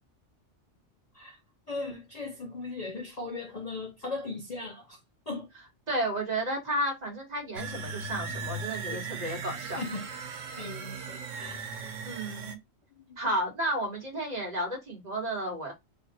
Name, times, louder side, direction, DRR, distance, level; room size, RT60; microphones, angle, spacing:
voice 1, 1.7-5.0 5.3-5.5 8.9-9.4 9.8-10.0 10.6-11.6, left 3 dB, 40° left, 0.7 m, -38 dB
voice 2, 5.9-9.8 12.0-12.6 13.2-15.7, right 1 dB, 35° right, 1.4 m, -32 dB
sound 1, 7.5-12.5, right 4 dB, 90° right, 1.1 m, -38 dB
3.4 x 2.4 x 4.1 m
omnidirectional pair, 1.3 m